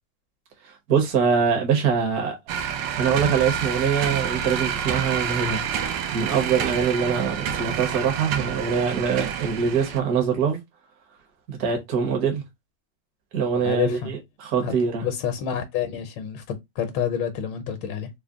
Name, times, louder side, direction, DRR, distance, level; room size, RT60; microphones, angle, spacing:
voice 1, 0.6-2.4 3.0-10.6 11.5-12.4 13.3-15.0, right 6 dB, 55° right, 1.4 m, -24 dB
sound 1, 2.5-10.0, right 8 dB, 80° right, 1.3 m, -28 dB
voice 2, 13.6-14.1 14.6-14.7 15.0-18.1, left 8 dB, 80° left, 1.3 m, -28 dB
3.8 x 2.0 x 3.5 m
omnidirectional pair, 2.0 m